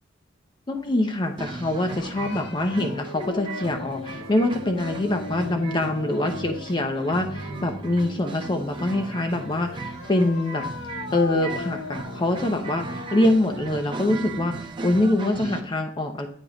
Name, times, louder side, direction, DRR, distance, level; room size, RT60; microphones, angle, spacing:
voice 1, 0.7-10.6 10.9-16.3, left 1 dB, 25° left, 5 dB, 0.6 m, -24 dB
sound 1, 0.8-13.6, left 5 dB, 70° left, 0.5 m, -39 dB
sound 2, 1.4-15.6, right 3 dB, 25° right, 0.6 m, -37 dB
8.1 x 3.0 x 4.9 m, 0.62 s
head